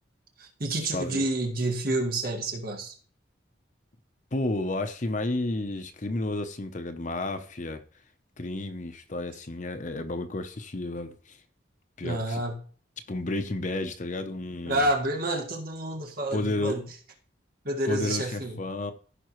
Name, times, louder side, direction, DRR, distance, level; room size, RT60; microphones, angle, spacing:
voice 1, 0.4-3.0 12.0-12.6 14.7-16.8 17.6-18.6, right 1 dB, 50° right, 1.8 m, -29 dB
voice 2, 0.9-1.2 4.3-7.8 8.4-11.4 12.0-12.4 13.1-14.8 16.3-16.8 17.8-18.9, left 2 dB, 40° left, 0.8 m, -31 dB
15.0 x 5.4 x 3.1 m
head